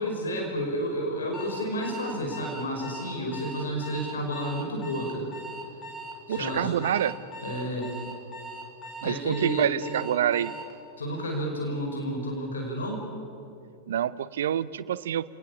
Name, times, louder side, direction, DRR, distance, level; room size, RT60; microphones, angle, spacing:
voice 1, 0.0-5.3 6.3-6.7 7.4-7.9 9.0-9.7 11.0-13.0, equal, 70° left, 0 dB, 5.3 m, -31 dB
Alarm, 1.3-10.7, right 1 dB, 25° left, 5.1 m, -40 dB
voice 2, 6.3-7.2 9.0-10.5 13.9-15.2, right 10 dB, 60° right, 18 dB, 0.7 m, -27 dB
30.0 x 19.0 x 7.4 m, 2.6 s
figure-of-eight pair, 90°, 0 cm